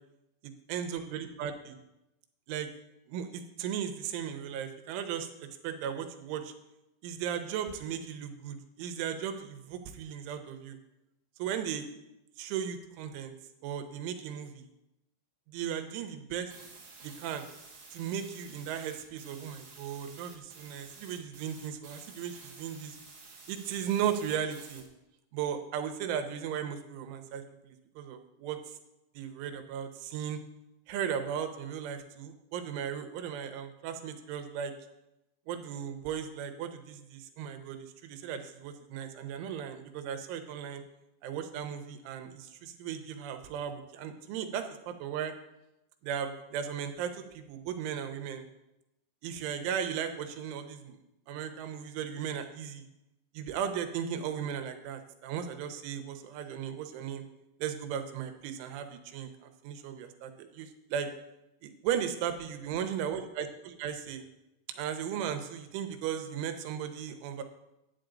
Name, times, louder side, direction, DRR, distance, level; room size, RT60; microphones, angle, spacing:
voice 1, 0.7-1.8 2.5-2.7 3.1-6.5 7.0-10.8 11.4-11.9 12.4-13.3 13.6-14.7 15.5-16.5 17.0-17.4 17.9-23.0 23.5-24.8 25.3-28.6 29.2-30.4 30.9-34.7 35.5-40.8 41.2-45.3 46.0-48.5 49.2-51.0 51.3-52.8 53.3-57.2 57.6-61.1 61.6-64.2 64.8-67.4, right 8 dB, 90° right, 7 dB, 3.3 m, -36 dB
sound 1, 16.5-24.8, right 4 dB, 50° right, 1.8 m, -52 dB
11.0 x 9.0 x 3.8 m, 0.91 s
omnidirectional pair, 5.3 m